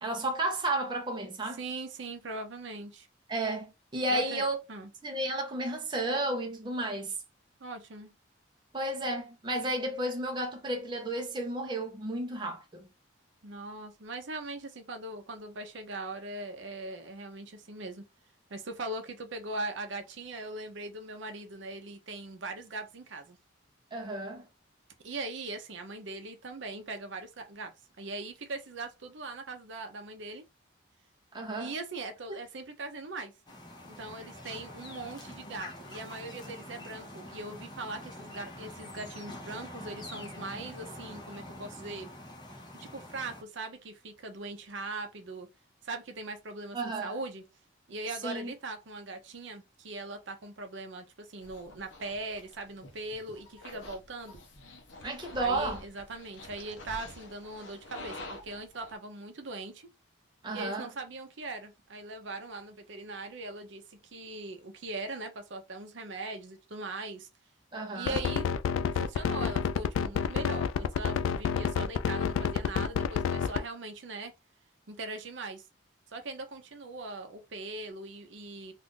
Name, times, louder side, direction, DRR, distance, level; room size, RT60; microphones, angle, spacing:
voice 1, 0.0-1.6 3.3-4.6 5.0-7.1 8.7-12.8 23.9-24.5 31.3-31.7 46.7-47.1 48.2-48.5 55.0-55.8 60.4-60.9 67.7-68.2, right 1 dB, 25° right, 0.6 m, -32 dB
voice 2, 1.6-3.1 4.1-4.4 4.7-4.9 7.6-8.1 13.4-18.0 18.5-23.4 25.0-27.7 28.0-30.4 31.6-33.3 33.8-42.1 42.8-45.5 45.8-47.4 47.9-54.4 55.4-58.2 58.4-59.9 60.5-67.3 67.9-68.5 68.8-74.3 74.9-75.6 76.1-78.7, right 2 dB, 65° right, 0.6 m, -40 dB
sound 1, 33.5-43.4, left 1 dB, 20° left, 0.7 m, -45 dB
sound 2, 51.4-58.9, left 2 dB, 65° left, 0.8 m, -47 dB
sound 3, 68.1-73.6, left 7 dB, 85° left, 0.3 m, -29 dB
2.6 x 2.5 x 3.6 m
head